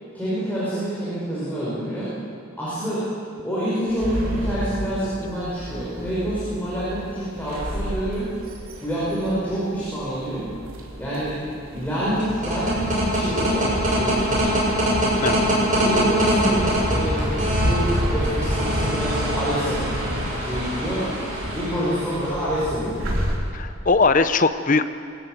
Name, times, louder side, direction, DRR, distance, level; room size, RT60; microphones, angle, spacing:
voice 1, 0.1-2.1 2.6-3.1 3.4-8.3 8.8-10.5 11.0-11.4 11.7-14.5 15.8-19.8 20.4-21.1 21.5-23.2, equal, 10° left, -10 dB, 5.4 m, -27 dB
sound 1, 3.9-23.4, equal, 85° right, 3.6 m, -35 dB
sound 2, 12.1-22.8, equal, 40° right, 6.6 m, -23 dB
voice 2, 23.5-24.9, left 4 dB, 40° left, 11 dB, 0.7 m, -19 dB
22.5 x 13.5 x 9.3 m, 2.5 s
head